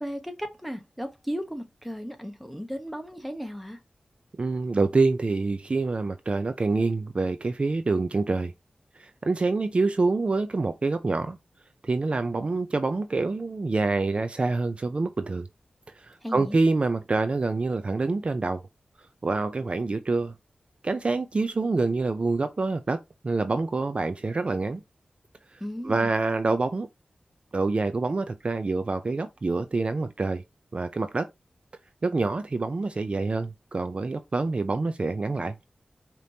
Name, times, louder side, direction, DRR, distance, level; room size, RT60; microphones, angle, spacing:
voice 1, 0.0-3.8 16.2-16.6 25.6-26.1, equal, ahead, 1.0 m, -35 dB
voice 2, 4.4-8.5 9.0-11.4 11.8-15.5 16.0-18.6 19.2-20.3 20.8-23.0 23.2-24.8 25.8-26.9 27.5-30.4 30.7-31.3 32.0-35.5, right 3 dB, 45° right, 0.4 m, -26 dB
5.0 x 2.9 x 2.7 m
wide cardioid pair, 80°, 3 cm